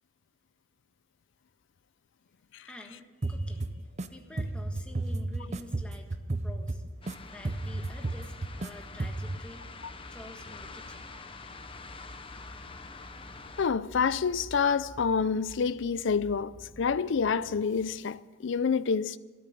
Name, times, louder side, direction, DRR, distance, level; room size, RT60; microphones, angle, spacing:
voice 1, 2.7-3.7 4.1-6.1 6.4-6.8 7.2-9.7 10.1-11.1, left 1 dB, 5° left, 1.6 m, -49 dB
sound 1, 3.2-4.1 4.4-7.1 7.4-8.7 9.0-9.4, right 2 dB, 35° right, 0.7 m, -33 dB
sound 2, 3.4-17.7, equal, 80° right, 5.9 m, -51 dB
sound 3, 7.0-13.7, left 4 dB, 30° left, 0.9 m, -46 dB
voice 2, 13.6-19.2, left 5 dB, 65° left, 0.5 m, -28 dB
13.5 x 13.0 x 8.5 m
head